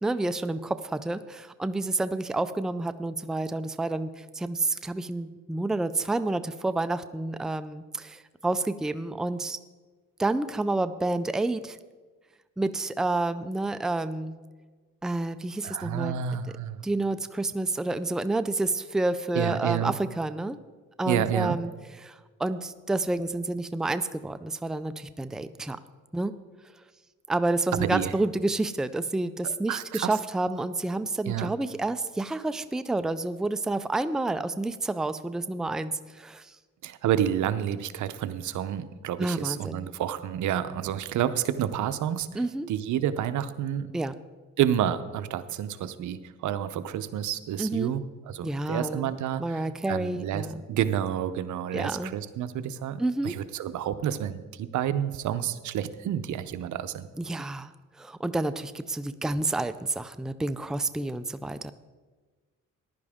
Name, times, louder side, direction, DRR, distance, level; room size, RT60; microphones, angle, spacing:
voice 1, 0.0-9.6 10.2-11.8 12.6-14.4 15.0-16.4 16.8-20.6 21.0-21.7 22.0-25.8 26.1-26.3 27.3-36.5 39.2-39.8 42.3-42.7 43.9-44.1 47.6-47.9 48.4-49.1 49.4-50.6 51.7-52.1 53.0-53.3 57.2-57.7 58.0-61.7, right 2 dB, ahead, 11 dB, 0.4 m, -29 dB
voice 2, 15.6-16.8 19.3-19.9 21.1-21.6 27.7-28.1 29.4-30.1 31.3-31.5 36.8-43.9 44.6-57.1, right 10 dB, 75° right, 12 dB, 0.7 m, -29 dB
15.0 x 11.0 x 3.6 m, 1.4 s
cardioid pair, 90°, 30 cm